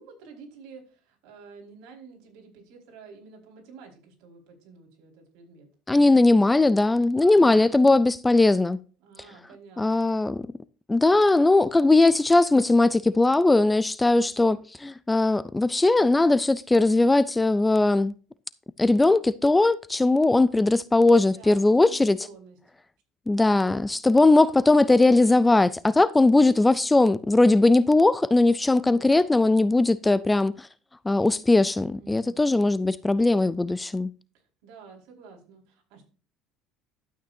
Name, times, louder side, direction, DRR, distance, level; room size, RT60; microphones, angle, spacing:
voice 1, 0.0-6.5 7.2-7.9 9.0-10.1 21.2-22.6 32.0-32.6 34.3-36.1, right 5 dB, 75° right, 4.7 m, -50 dB
voice 2, 5.9-8.8 9.8-10.5 10.9-18.1 18.8-22.2 23.3-30.7 31.1-34.1, left 2 dB, 10° left, 0.3 m, -19 dB
12.0 x 8.8 x 2.6 m
cardioid pair, 155°, 0 cm